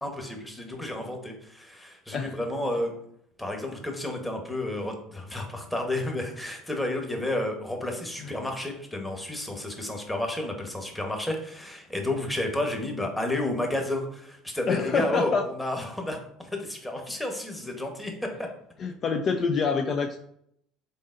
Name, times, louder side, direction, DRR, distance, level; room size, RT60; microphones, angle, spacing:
voice 1, 0.0-2.9 3.4-18.1 18.4-18.5, left 1 dB, 10° left, 2 dB, 1.1 m, -31 dB
voice 2, 14.7-15.5 18.8-20.2, left 5 dB, 45° left, 5 dB, 0.4 m, -26 dB
3.8 x 3.8 x 2.5 m, 0.70 s
hypercardioid pair, 65°, 0 cm